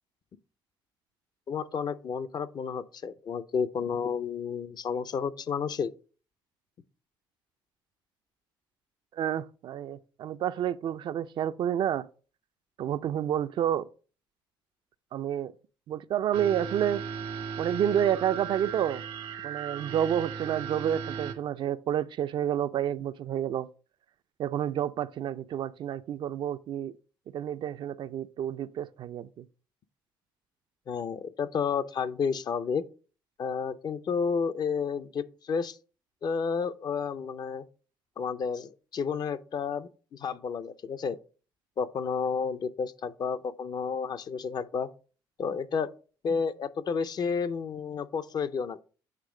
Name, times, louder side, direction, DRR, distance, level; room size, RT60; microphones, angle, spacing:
voice 1, 1.5-5.9 30.9-32.8 33.4-35.8 36.2-37.6 38.2-41.2 41.8-44.9 45.4-45.9 46.2-48.8, left 6 dB, 50° left, 0.6 m, -31 dB
voice 2, 9.2-12.1 12.8-13.9 15.1-15.5 15.9-17.0 17.6-19.0 19.4-23.7 24.4-26.9 27.3-29.5, right 10 dB, 60° right, 0.4 m, -29 dB
sound 1, 16.3-21.3, right 7 dB, 90° right, 1.1 m, -37 dB
8.2 x 3.1 x 4.8 m
supercardioid pair, 75°, 9 cm